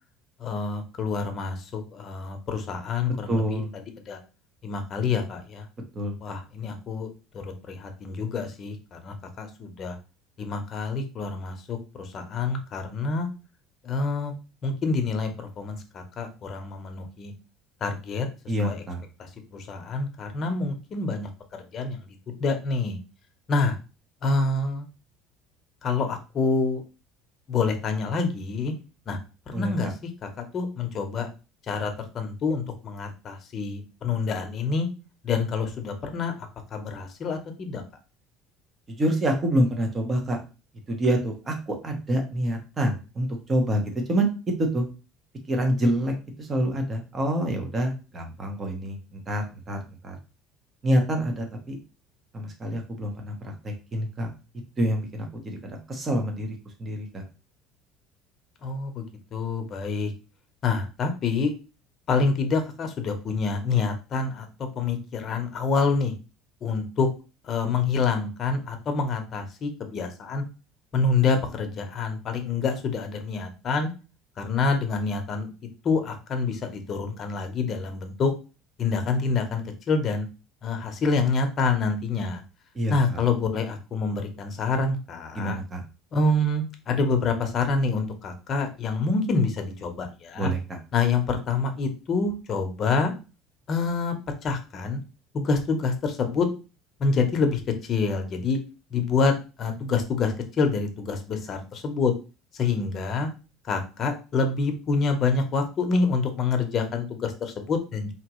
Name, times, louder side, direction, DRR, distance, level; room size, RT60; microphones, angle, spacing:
voice 1, 0.4-3.6 4.1-4.2 4.6-5.7 6.2-10.0 10.4-13.3 13.8-14.3 14.6-17.3 17.8-18.3 18.6-18.8 19.2-21.3 21.7-22.0 22.4-23.0 23.5-23.8 24.2-24.9 25.8-26.8 27.5-28.7 29.1-29.2 29.5-30.1 30.4-31.3 31.7-34.9 35.2-37.8 58.6-59.1 59.3-60.1 60.6-61.5 62.1-64.5 64.7-66.1 66.6-67.1 67.4-70.4 70.9-73.9 74.4-75.5 75.8-78.3 78.8-80.3 80.6-82.4 82.9-85.6 86.1-90.5 90.9-93.1 93.7-94.2 94.4-95.0 95.3-96.5 97.0-98.6 98.9-99.3 99.6-102.1 102.5-103.3 103.6-108.1, left 4 dB, 35° left, 5 dB, 0.9 m, -27 dB
voice 2, 3.3-3.7 5.9-6.1 18.5-19.0 29.5-29.7 38.9-40.4 40.9-43.8 44.1-44.3 44.6-44.9 45.5-46.1 46.4-50.2 50.8-51.8 52.3-54.3 54.8-56.5 56.8-57.2 82.7-83.2 85.3-85.8 90.4-90.8, right 1 dB, 20° right, 3 dB, 1.0 m, -27 dB
5.0 x 2.9 x 3.0 m, 0.32 s
cardioid pair, 140°, 0 cm